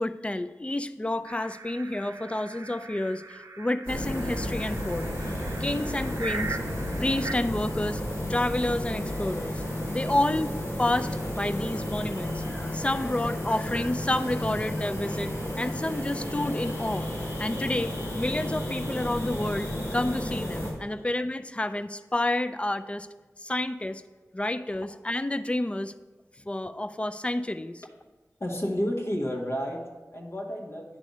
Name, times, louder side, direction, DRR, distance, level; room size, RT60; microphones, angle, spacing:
voice 1, 0.0-5.1 5.6-6.6 7.0-8.0 8.3-9.6 9.9-10.5 10.8-23.1 23.4-24.0 24.3-25.9 26.5-27.8, left 1 dB, 20° left, 12 dB, 0.4 m, -29 dB
sound 1, 1.3-7.3, right 3 dB, 65° right, 0.6 m, -40 dB
sound 2, 3.9-20.7, left 1 dB, 85° left, 2.4 m, -32 dB
voice 2, 28.4-31.0, equal, 50° left, -1 dB, 1.1 m, -31 dB
9.4 x 3.4 x 5.2 m, 1.2 s
cardioid pair, 40°, 6 cm